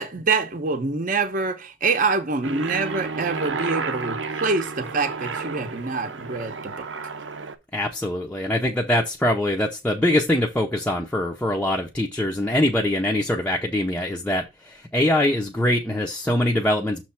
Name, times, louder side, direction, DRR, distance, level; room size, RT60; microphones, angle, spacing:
voice 1, 0.0-6.7, right 4 dB, 45° right, 0.8 m, -25 dB
Aircraft, 2.4-7.5, right 4 dB, 90° right, 0.8 m, -31 dB
voice 2, 7.7-17.0, left 1 dB, 10° left, 0.6 m, -23 dB
6.5 x 3.1 x 5.7 m
head